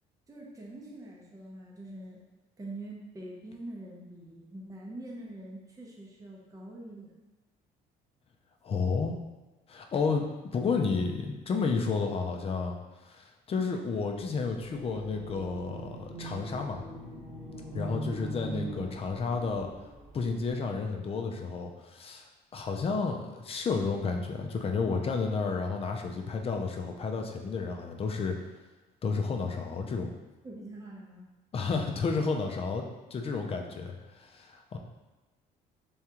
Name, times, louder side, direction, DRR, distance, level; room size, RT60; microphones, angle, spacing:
voice 1, 0.3-2.2 2.6-7.1 18.5-19.0 30.4-31.3, right 2 dB, 20° right, -3 dB, 0.7 m, -44 dB
voice 2, 8.6-9.1 9.7-10.3 10.5-12.8 13.1-16.8 17.7-19.7 20.1-22.3 22.5-28.4 29.0-30.1 31.5-32.8 33.1-34.8, left 4 dB, 35° left, 3 dB, 0.5 m, -31 dB
sound 1, 14.5-20.5, right 1 dB, ahead, 1.1 m, -42 dB
3.5 x 3.5 x 2.9 m, 1.1 s
cardioid pair, 110°, 17 cm